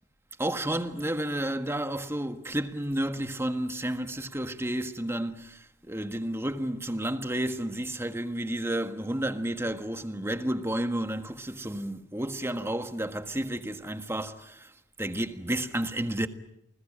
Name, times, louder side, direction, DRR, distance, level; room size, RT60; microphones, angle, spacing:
voice 1, 0.4-14.7 15.0-16.3, right 1 dB, 15° right, 1.6 m, -31 dB
29.5 x 20.5 x 8.7 m
head